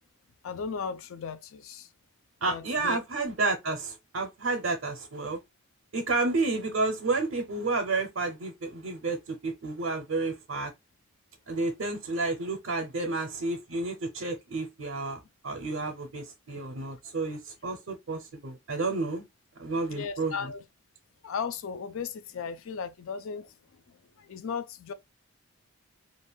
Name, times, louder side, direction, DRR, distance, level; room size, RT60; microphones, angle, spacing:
voice 1, 0.4-1.9 2.5-3.0 13.0-13.1 19.9-20.6 21.2-24.9, left 6 dB, 65° left, 0.3 m, -36 dB
voice 2, 2.4-5.4 5.9-10.7 11.5-19.3 19.6-20.5, right 3 dB, 60° right, 0.6 m, -31 dB
2.4 x 2.2 x 3.3 m
head